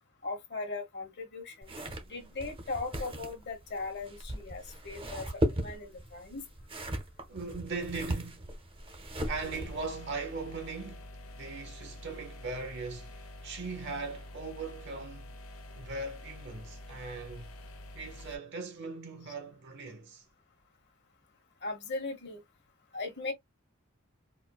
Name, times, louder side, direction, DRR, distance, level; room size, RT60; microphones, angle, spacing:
voice 1, 0.2-1.7 2.1-5.3 5.6-6.4 21.6-22.4 22.9-23.3, left 3 dB, 55° left, 1.2 m, -38 dB
sound 1, 1.6-9.9, equal, 25° right, 0.8 m, -37 dB
voice 2, 1.7-2.3 7.3-8.5 9.2-15.3 15.7-17.5 17.9-20.2, right 3 dB, 55° right, 1.0 m, -40 dB
sound 2, 9.3-18.4, left 1 dB, 75° left, 0.9 m, -47 dB
4.3 x 2.2 x 2.3 m
head